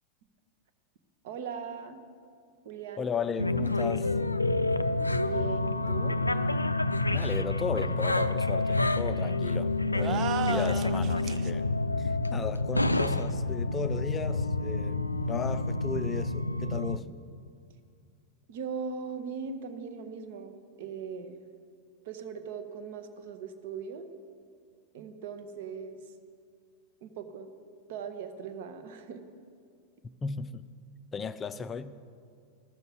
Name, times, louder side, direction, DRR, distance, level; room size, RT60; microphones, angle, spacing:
voice 1, 1.2-2.0 2.6-3.1 5.2-6.2 18.5-21.4 22.0-24.1 24.9-26.0 27.0-27.5 27.9-29.2, right 6 dB, 55° right, 8 dB, 0.9 m, -39 dB
voice 2, 3.0-4.1 7.1-11.7 12.0-17.1 30.2-30.6 31.1-31.9, left 5 dB, 20° left, 12 dB, 0.5 m, -35 dB
sound 1, 3.4-17.0, left 2 dB, 85° left, 0.4 m, -28 dB
sound 2, 10.0-11.5, right 9 dB, 35° right, 0.5 m, -33 dB
14.0 x 6.8 x 7.5 m, 2.3 s
figure-of-eight pair, 90°, 0 cm